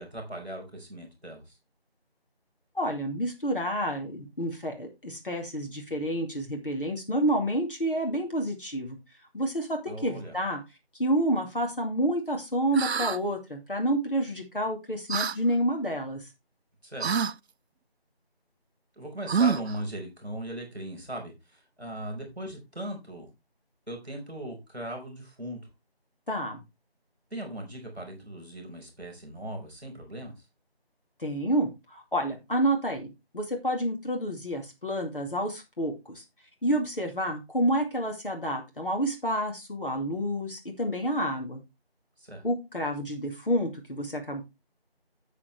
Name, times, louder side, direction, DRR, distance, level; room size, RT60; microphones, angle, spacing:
voice 1, 0.0-1.6 9.9-10.4 16.8-17.1 19.0-23.3 23.9-25.6 27.3-30.3 42.2-42.4, right 1 dB, 5° left, -17 dB, 3.6 m, -39 dB
voice 2, 2.7-9.0 9.3-10.6 11.0-16.2 26.3-26.6 31.2-36.2 36.6-41.6 42.4-44.4, right 1 dB, 55° left, 2 dB, 2.4 m, -29 dB
sound 1, 12.7-13.2 15.1-15.4 17.0-17.3 19.3-19.8, right 6 dB, 90° right, 0.5 m, -26 dB
9.4 x 8.5 x 3.3 m, 0.23 s
figure-of-eight pair, 175°, 31 cm